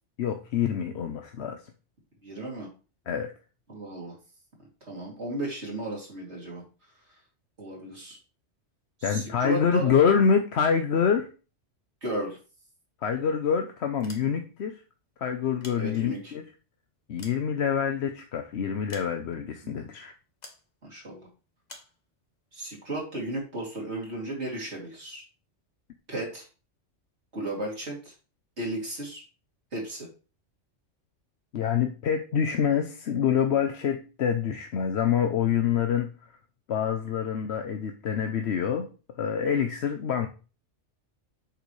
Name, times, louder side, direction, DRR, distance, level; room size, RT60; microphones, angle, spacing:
voice 1, 0.2-1.6 3.1-3.3 7.8-7.9 9.0-11.3 13.0-14.8 15.2-16.4 17.1-20.1 31.5-36.1 36.7-38.9 39.2-40.3, left 7 dB, 70° left, 5 dB, 1.0 m, -26 dB
voice 2, 2.2-2.7 3.7-4.2 4.8-6.6 7.6-8.2 9.0-9.9 12.0-12.4 15.8-16.3 19.6-19.9 20.8-21.3 22.5-25.2 26.1-26.5 27.3-28.1 28.6-29.2 29.7-30.1, right 1 dB, 70° right, -2 dB, 3.2 m, -34 dB
sound 1, 13.9-14.7 15.4-16.4 16.9-18.1 18.9-19.5 20.4-20.7 21.7-22.0, left 2 dB, 35° left, 1.4 m, -49 dB
7.9 x 6.6 x 3.2 m, 0.35 s
omnidirectional pair, 1.2 m